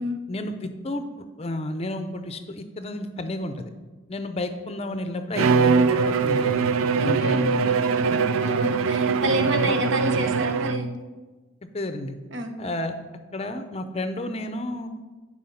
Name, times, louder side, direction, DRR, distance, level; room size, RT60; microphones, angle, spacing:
voice 1, 0.3-3.7 4.1-6.7 7.0-7.6 9.6-9.8 11.7-12.2 12.6-13.0 13.3-14.9, left 1 dB, 30° left, 8 dB, 0.5 m, -31 dB
Bowed string instrument, 5.3-11.0, right 5 dB, 90° right, 0.4 m, -22 dB
voice 2, 7.0-10.9 12.3-12.5, equal, 70° right, 5 dB, 1.0 m, -29 dB
10.5 x 5.0 x 5.6 m, 1.2 s
head